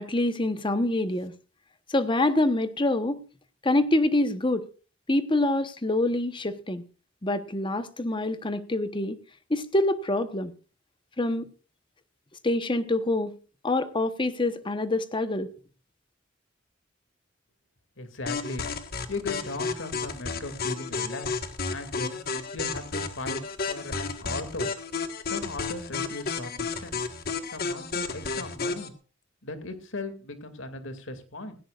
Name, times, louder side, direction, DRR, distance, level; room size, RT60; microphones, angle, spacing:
voice 1, 0.0-1.3 1.9-3.2 3.6-4.7 5.1-6.8 7.2-9.2 9.5-10.5 11.2-11.5 12.4-13.3 13.6-15.5, left 2 dB, 25° left, 11 dB, 1.1 m, -26 dB
voice 2, 18.0-18.7 19.1-21.4 21.7-22.2 22.5-24.7 25.2-27.0 27.5-28.9 29.4-31.6, left 2 dB, 75° left, 8 dB, 2.5 m, -37 dB
sound 1, 18.3-28.9, left 4 dB, 50° left, 1.6 m, -32 dB
17.0 x 16.5 x 2.5 m, 0.35 s
head